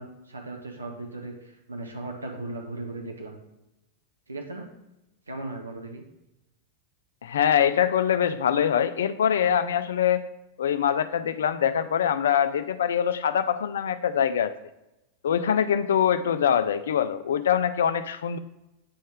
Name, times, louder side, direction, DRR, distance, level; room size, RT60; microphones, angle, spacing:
voice 1, 0.0-3.4 4.3-4.7 5.3-6.0, right 2 dB, 80° right, 2 dB, 0.8 m, -37 dB
voice 2, 7.2-10.3 10.6-14.5 15.2-18.4, left 8 dB, 65° left, 12 dB, 0.3 m, -23 dB
8.8 x 3.2 x 3.5 m, 0.92 s
figure-of-eight pair, 90°, 0 cm